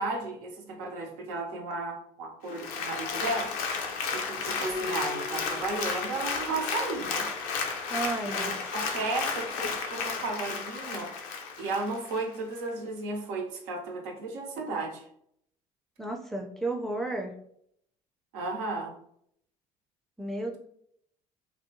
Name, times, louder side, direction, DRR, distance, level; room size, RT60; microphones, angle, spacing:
voice 1, 0.0-3.5 4.1-7.3 8.2-11.1 11.6-15.0 18.3-19.0, right 3 dB, 75° right, 1 dB, 0.6 m, -34 dB
Applause, 2.5-12.2 12.7-12.8, left 5 dB, 80° left, 0.4 m, -33 dB
Keyboard (musical), 4.6-7.2, left 2 dB, 35° right, 0.8 m, -39 dB
voice 2, 7.9-8.5 16.0-17.3 20.2-20.6, right 2 dB, ahead, 1 dB, 0.5 m, -32 dB
2.7 x 2.1 x 2.7 m, 0.69 s
hypercardioid pair, 60°, 19 cm